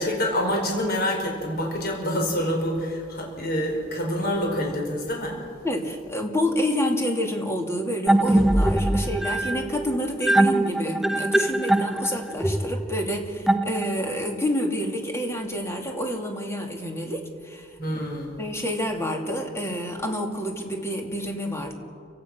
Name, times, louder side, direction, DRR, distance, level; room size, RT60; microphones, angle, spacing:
voice 1, 0.0-5.5 17.8-18.4, equal, 50° left, 0 dB, 4.9 m, -27 dB
voice 2, 5.6-18.0 18.4-21.7, equal, 15° left, 2 dB, 2.6 m, -28 dB
sound 1, 8.1-14.2, right 1 dB, ahead, 0.4 m, -22 dB
29.5 x 16.5 x 6.2 m, 2.2 s
head